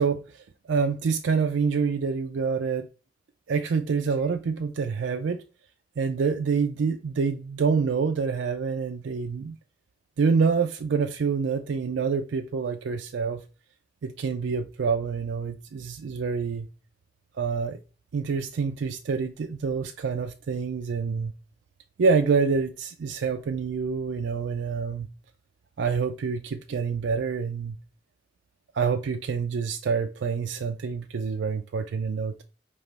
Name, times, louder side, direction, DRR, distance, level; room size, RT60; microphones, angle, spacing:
voice 1, 0.0-2.9 3.5-5.4 6.0-9.6 10.2-13.4 14.0-16.7 17.4-17.8 18.1-21.3 22.0-25.1 25.8-27.8 28.7-32.4, right 5 dB, 80° right, 0.4 m, -27 dB
5.3 x 2.9 x 3.3 m
head